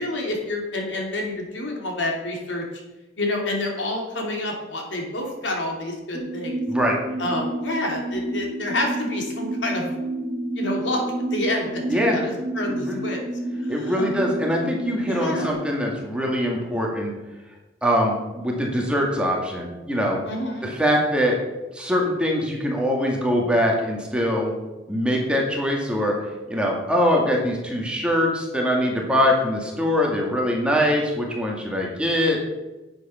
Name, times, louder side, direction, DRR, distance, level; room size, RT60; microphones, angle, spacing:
voice 1, 0.0-2.7 3.2-6.6 7.2-9.9 10.6-11.0 11.3-13.2 13.6-14.1 15.1-15.6 20.2-20.6, left 1 dB, 85° left, 1 dB, 2.7 m, -28 dB
sound 1, 6.1-15.5, right 1 dB, 25° right, 1.0 m, -30 dB
voice 2, 6.7-7.0 11.9-12.2 12.7-13.0 13.7-17.1 17.8-20.2 20.6-21.4 21.7-24.5 24.9-26.1 26.5-32.4, equal, 5° right, -1 dB, 2.0 m, -23 dB
10.0 x 7.9 x 5.6 m, 1.1 s
head